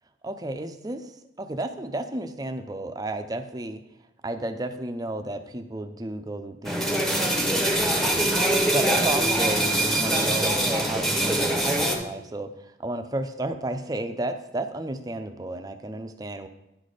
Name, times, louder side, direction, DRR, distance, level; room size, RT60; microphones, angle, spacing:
voice 1, 0.2-1.1 1.4-3.8 4.2-8.2 8.7-16.5, right 2 dB, 20° right, 8 dB, 0.5 m, -32 dB
sound 1, 6.6-12.0, right 1 dB, ahead, 0.8 m, -23 dB
10.5 x 4.1 x 4.9 m, 0.89 s
head